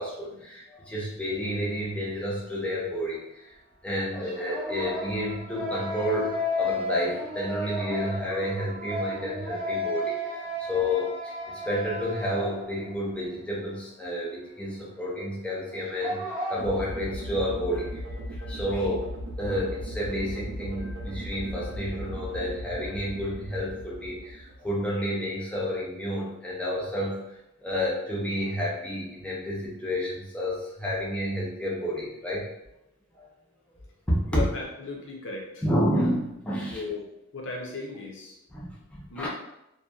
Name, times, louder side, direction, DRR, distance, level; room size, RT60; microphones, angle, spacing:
voice 1, 0.0-3.6 3.8-27.3 27.6-32.5 33.1-33.3 34.1-34.4 35.6-36.8 38.5-39.3, equal, 5° left, -6 dB, 0.5 m, -30 dB
sound 1, 1.5-1.6 4.1-13.0 13.3-13.4 15.7-16.6, left 1 dB, 40° right, 0.7 m, -33 dB
sound 2, 16.6-24.8, equal, 75° right, 0.5 m, -37 dB
voice 2, 34.3-35.6 36.7-37.0 37.3-38.4 39.1-39.3, left 3 dB, 65° left, 0 dB, 0.5 m, -36 dB
2.6 x 2.1 x 2.3 m, 0.86 s
head